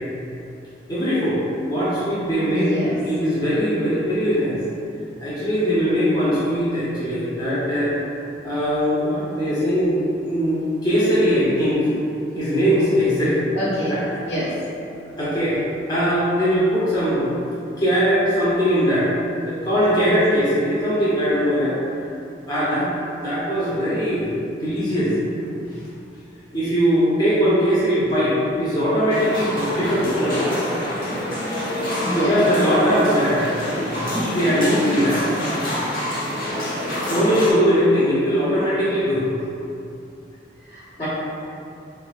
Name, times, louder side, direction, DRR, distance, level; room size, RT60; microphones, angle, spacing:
voice 1, 0.9-1.4 1.7-2.7 3.0-4.6 5.2-7.9 8.4-10.0 10.2-11.8 12.3-13.4 13.9-14.2 15.2-15.6 15.9-17.3 17.8-19.1 19.4-21.8 22.5-22.9 23.2-24.3 24.6-25.2 26.5-30.4 31.0-31.1 31.9-33.5 33.8-35.2 37.1-39.3 41.0-41.1, equal, 25° left, -10 dB, 0.6 m, -20 dB
voice 2, 2.5-3.0 13.5-14.5 19.9-20.2 32.0-32.4 40.7-41.1, equal, 70° left, -9 dB, 1.5 m, -26 dB
sound 1, 29.1-37.5, left 1 dB, 50° left, 1.0 m, -26 dB
6.4 x 2.3 x 2.4 m, 2.6 s
head